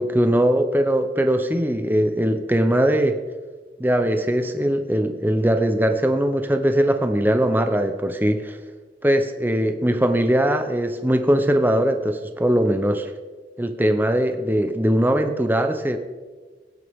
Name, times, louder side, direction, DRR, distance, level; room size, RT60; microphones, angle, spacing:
voice 1, 0.0-3.2 3.8-8.6 9.0-13.1 13.6-16.0, right 1 dB, 10° right, 7 dB, 0.8 m, -20 dB
20.5 x 9.8 x 3.6 m, 1.4 s
head